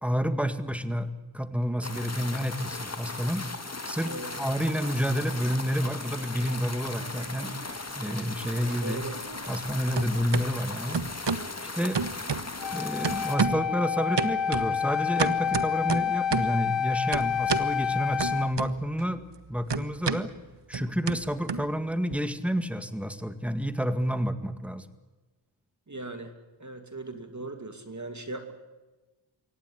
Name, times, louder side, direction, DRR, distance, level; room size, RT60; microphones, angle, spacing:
voice 1, 0.0-3.4 3.9-7.5 7.9-9.0 9.5-11.1 11.6-12.0 12.7-19.2 19.5-20.3 20.7-24.9, equal, 5° right, 10 dB, 1.9 m, -29 dB
sound 1, 1.8-13.4, left 3 dB, 30° left, 2.2 m, -38 dB
sound 2, 6.8-7.8 8.1-9.7 9.9-10.5 10.9-11.5 11.9-12.7 13.0-13.7 14.2-16.6 17.1-17.7 18.2-19.0 19.3-22.2, right 5 dB, 60° right, 1.2 m, -31 dB
voice 2, 8.8-9.2 25.9-26.3 26.6-28.5, right 2 dB, 35° right, 7 dB, 2.6 m, -38 dB
Wind instrument woodwind instrument, 12.6-18.5, left 8 dB, 65° left, 1.0 m, -28 dB
24.0 x 17.5 x 9.7 m, 1.2 s
wide cardioid pair, 55°, 48 cm